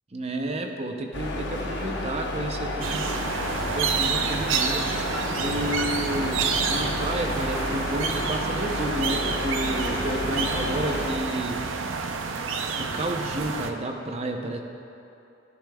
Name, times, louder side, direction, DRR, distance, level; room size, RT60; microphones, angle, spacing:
voice 1, 0.1-3.1 3.6-5.1 5.4-11.6 12.8-14.6, right 1 dB, 30° right, 4 dB, 0.6 m, -31 dB
sound 1, 1.1-11.2, left 1 dB, 60° left, 0.9 m, -31 dB
sound 2, 2.8-13.7, right 5 dB, 80° right, 0.5 m, -29 dB
11.5 x 10.0 x 2.3 m, 2.8 s
head